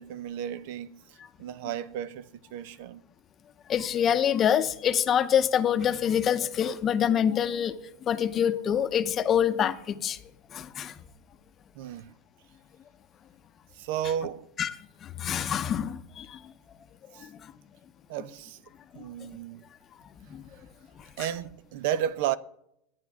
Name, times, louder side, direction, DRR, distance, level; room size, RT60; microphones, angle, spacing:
voice 1, 0.0-3.0 11.7-12.1 13.7-14.5 17.1-17.3 18.1-18.6 18.9-19.6 21.2-22.4, right 10 dB, 65° right, 0.5 m, -33 dB
voice 2, 3.7-7.8 8.1-10.2 10.5-10.9 14.6-14.7 15.0-16.4 17.2-17.5 20.3-20.4, left 9 dB, 30° left, 0.7 m, -26 dB
13.5 x 9.1 x 3.6 m
supercardioid pair, 125°, 0 cm